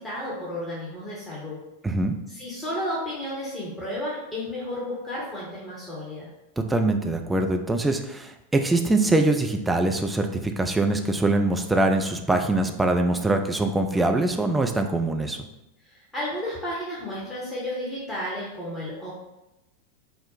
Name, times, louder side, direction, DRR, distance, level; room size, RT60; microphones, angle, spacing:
voice 1, 0.0-1.6 2.3-6.3 15.8-19.1, left 1 dB, 15° left, -7 dB, 1.0 m, -32 dB
voice 2, 1.8-2.1 6.6-15.4, right 2 dB, 10° right, 4 dB, 0.4 m, -23 dB
4.5 x 2.0 x 3.9 m, 0.94 s
figure-of-eight pair, 90°, 0 cm